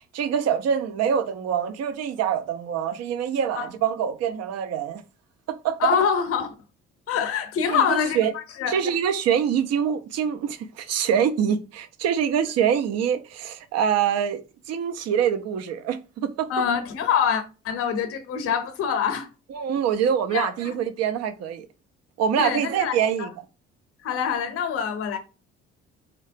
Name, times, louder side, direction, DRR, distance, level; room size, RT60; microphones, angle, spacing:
voice 1, 0.1-5.0 5.5-5.8 7.7-8.3 8.7-14.4 14.7-16.5 19.5-21.7 22.2-23.3, right 8 dB, 60° right, 0.5 m, -25 dB
voice 2, 5.8-6.5 7.1-8.8 16.5-19.3 20.3-20.8 22.4-23.3 24.0-25.2, left 7 dB, 50° left, 0.6 m, -25 dB
2.8 x 2.0 x 2.5 m
hypercardioid pair, 55°, 30 cm